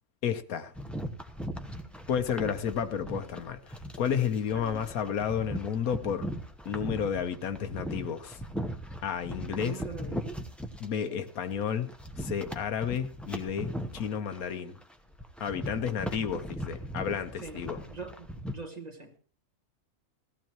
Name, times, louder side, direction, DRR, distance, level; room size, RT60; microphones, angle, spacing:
voice 1, 0.2-0.7 2.1-6.3 6.6-8.4 9.0-9.8 10.8-14.8 15.4-17.8, left 8 dB, 85° left, 1.4 m, -32 dB
sound 1, 0.8-10.9 11.3-18.5, equal, ahead, 0.8 m, -39 dB
voice 2, 4.5-4.8 9.5-10.3 11.0-11.2 17.4-19.1, right 4 dB, 30° right, 1.5 m, -43 dB
17.0 x 13.5 x 3.1 m
omnidirectional pair, 1.5 m